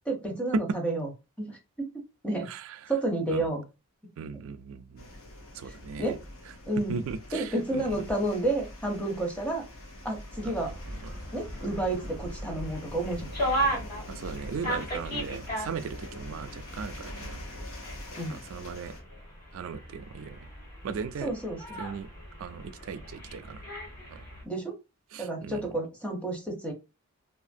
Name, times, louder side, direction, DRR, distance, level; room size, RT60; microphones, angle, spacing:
voice 1, 0.1-1.1 1.4-2.5 2.9-3.6 5.6-6.2 6.7-7.0 7.3-9.6 10.0-10.7 11.3-13.3 18.1-18.4 21.2-21.8 24.4-24.8 25.2-26.7, right 2 dB, 5° left, 0.6 m, -31 dB
voice 2, 2.4-2.9 3.3-3.5 4.2-5.1 5.5-6.2 6.8-8.1 10.4-11.1 14.1-17.4 18.2-19.0 19.5-20.5 20.8-21.3 21.8-22.1 22.4-23.6 24.1-24.3 25.1-25.7, right 5 dB, 65° right, 0.3 m, -37 dB
sound 1, 5.0-19.0, left 1 dB, 80° left, 0.9 m, -43 dB
sound 2, 10.5-24.4, right 1 dB, 40° left, 1.4 m, -37 dB
2.8 x 2.4 x 2.5 m
head